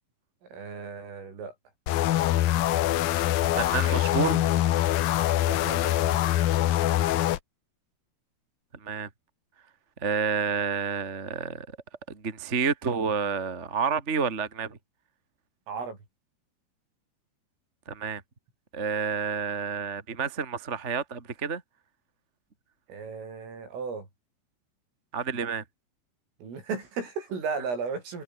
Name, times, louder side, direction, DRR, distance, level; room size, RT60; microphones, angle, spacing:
voice 1, 0.4-1.5 5.5-6.2 15.7-16.0 22.9-24.1 26.4-28.2, right 5 dB, 70° right, 10.0 m, -35 dB
sound 1, 1.9-7.4, left 13 dB, 80° left, 2.1 m, -24 dB
voice 2, 3.6-4.5 8.8-9.1 10.0-11.8 12.1-14.8 17.9-18.2 18.7-21.6 25.1-25.6, right 6 dB, 25° right, 1.6 m, -29 dB
omnidirectional pair, 6.0 m